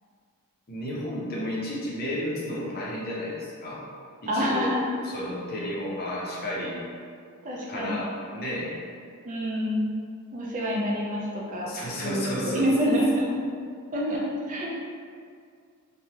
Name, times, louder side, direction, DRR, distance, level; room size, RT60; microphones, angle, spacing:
voice 1, 0.7-3.8 4.3-4.7 5.0-6.8 7.7-8.8 11.7-12.7, left 1 dB, 45° left, -5 dB, 0.6 m, -32 dB
voice 2, 4.3-4.8 5.6-5.7 7.4-8.1 9.2-10.0 10.3-11.7 12.0-13.3 13.9-14.7, equal, 35° right, -3 dB, 0.4 m, -27 dB
3.1 x 2.1 x 2.8 m, 2.2 s
head